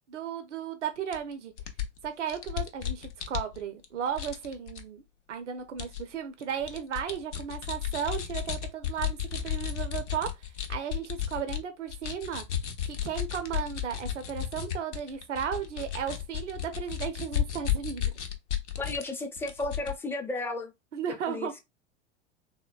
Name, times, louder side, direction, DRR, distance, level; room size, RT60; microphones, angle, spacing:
voice 1, 0.1-1.5 2.0-5.0 5.3-12.4 12.9-18.2 20.9-21.6, right 8 dB, 80° right, 0.6 m, -35 dB
sound 1, 1.1-1.2 1.6-3.8 4.2-4.8 5.8-6.0 6.4-11.6 11.9-19.1 19.4-19.9, left 10 dB, 80° left, 0.6 m, -33 dB
voice 2, 18.8-20.7 21.1-21.5, left 2 dB, 5° left, 0.5 m, -34 dB
3.5 x 2.1 x 2.2 m
figure-of-eight pair, 85°, 35 cm